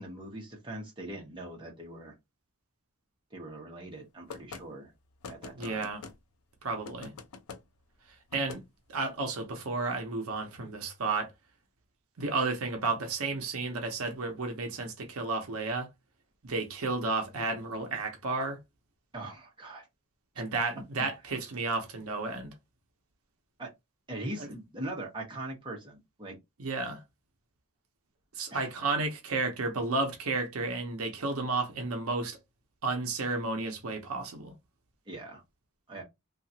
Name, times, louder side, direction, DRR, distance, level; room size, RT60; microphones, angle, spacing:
voice 1, 0.0-2.1 3.3-4.9 5.3-5.8 19.1-19.9 21.0-21.1 23.6-23.7 24.1-26.4 28.5-28.6 35.1-35.4 35.9-36.0, right 1 dB, 20° right, 1.0 m, -41 dB
sound 1, 4.3-4.6 5.2-6.2 6.9-7.6 8.3-8.6, left 5 dB, 90° left, 0.5 m, -44 dB
voice 2, 5.5-6.0 6.6-7.1 8.1-8.6 8.9-11.3 12.2-15.9 16.4-18.6 20.4-22.6 24.4-24.5 26.6-27.0 28.3-32.4 32.8-34.5, right 3 dB, 85° right, 0.7 m, -32 dB
2.8 x 2.4 x 2.7 m
head